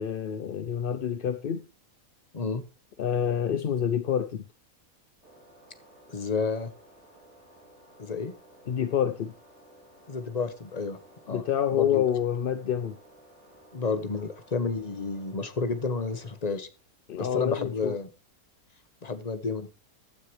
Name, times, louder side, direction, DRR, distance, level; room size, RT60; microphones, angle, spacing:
voice 1, 0.0-1.7 3.0-4.4 8.7-9.3 11.3-13.0 17.1-17.9, left 9 dB, 55° left, 10 dB, 0.6 m, -27 dB
sound 1, 5.2-16.4, right 1 dB, 50° right, 5.5 m, -55 dB
voice 2, 6.1-6.7 8.0-8.3 10.1-11.0 11.3-11.4 11.7-12.0 13.7-16.7 17.2-18.1 19.0-19.7, left 4 dB, 30° left, 10 dB, 1.1 m, -30 dB
15.0 x 9.5 x 3.2 m, 0.32 s
omnidirectional pair, 1.5 m